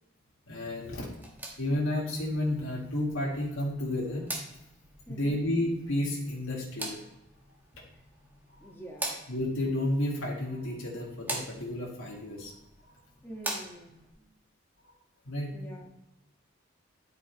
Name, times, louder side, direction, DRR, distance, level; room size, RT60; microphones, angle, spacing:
voice 1, 0.5-1.1 1.6-4.3 5.1-7.0 9.3-12.5 15.2-15.5, left 1 dB, 85° left, -3 dB, 1.8 m, -31 dB
sound 1, 1.1-14.1, right 1 dB, 10° right, 1.2 m, -43 dB
voice 2, 5.1-5.4 8.6-9.3 13.2-14.3 15.5-15.9, right 1 dB, 10° left, -1 dB, 1.3 m, -46 dB
10.0 x 4.4 x 4.5 m, 0.91 s
head